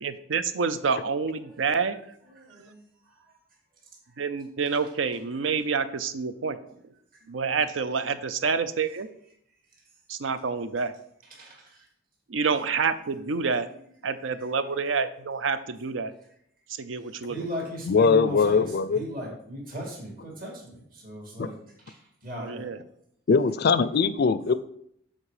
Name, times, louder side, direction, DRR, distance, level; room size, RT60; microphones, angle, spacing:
voice 1, 0.0-2.0 2.6-2.7 4.2-6.6 7.3-9.1 10.1-10.9 12.3-13.7 14.0-16.1 16.7-17.4 22.4-22.8, right 5 dB, 75° right, 12 dB, 0.5 m, -28 dB
voice 2, 2.3-2.8 7.3-7.5 11.3-11.8 17.3-18.7 18.9-21.6 21.9-22.7, equal, 45° right, -2 dB, 2.2 m, -37 dB
voice 3, 17.9-19.0 21.4-21.5 23.3-24.5, left 5 dB, 55° left, 14 dB, 0.4 m, -21 dB
7.4 x 4.5 x 4.9 m, 0.71 s
head